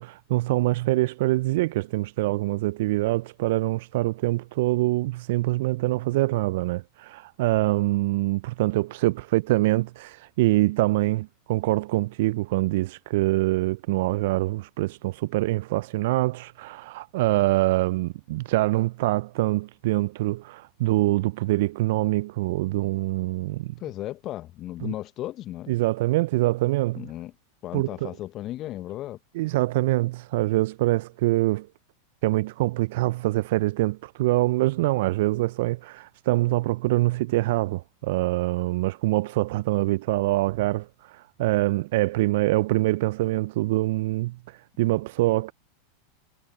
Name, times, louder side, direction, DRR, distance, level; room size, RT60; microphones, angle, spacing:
voice 1, 0.0-23.7 24.8-24.9 25.7-27.0 27.7-28.1 29.3-31.7 32.2-45.5, right 19 dB, 60° right, 0.5 m, -24 dB
voice 2, 23.8-25.7 27.0-27.3 27.6-29.2, left 14 dB, 40° left, 1.1 m, -35 dB
figure-of-eight pair, 90°, 0 cm